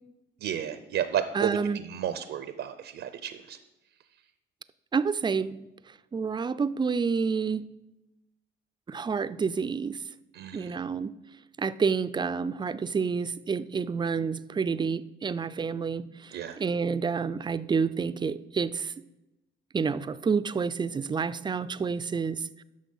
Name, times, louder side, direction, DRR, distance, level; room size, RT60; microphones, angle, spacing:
voice 1, 0.4-3.6 10.3-10.8 16.3-16.6, right 9 dB, 75° right, 10 dB, 0.6 m, -32 dB
voice 2, 1.3-1.8 4.9-5.7 6.1-7.7 8.9-10.0 10.5-11.1 11.6-18.9 19.7-22.6, right 5 dB, 25° right, 15 dB, 0.4 m, -29 dB
10.0 x 6.3 x 5.5 m, 0.98 s
cardioid pair, 90°, 20 cm